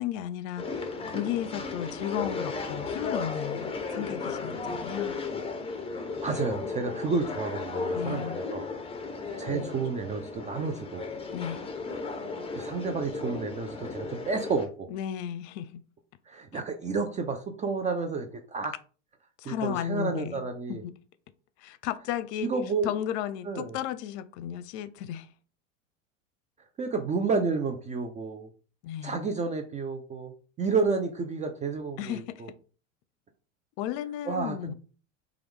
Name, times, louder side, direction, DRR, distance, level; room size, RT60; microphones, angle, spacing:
voice 1, 0.0-5.2 7.9-8.5 9.5-9.8 11.3-11.7 14.9-15.8 16.5-16.6 19.4-20.4 20.7-20.9 21.6-22.5 22.8-25.3 28.8-29.3 32.0-32.6 33.8-34.7, left 11 dB, 65° left, 0.6 m, -34 dB
sound 1, 0.6-14.7, left 4 dB, 15° left, 0.8 m, -35 dB
voice 2, 5.9-8.7 9.4-11.0 12.5-14.9 16.3-18.7 19.4-20.8 22.4-23.0 23.4-23.8 26.8-28.5 29.0-32.5 34.3-34.7, right 4 dB, 20° right, 0.4 m, -31 dB
4.4 x 2.4 x 3.4 m
hypercardioid pair, 100°, 38 cm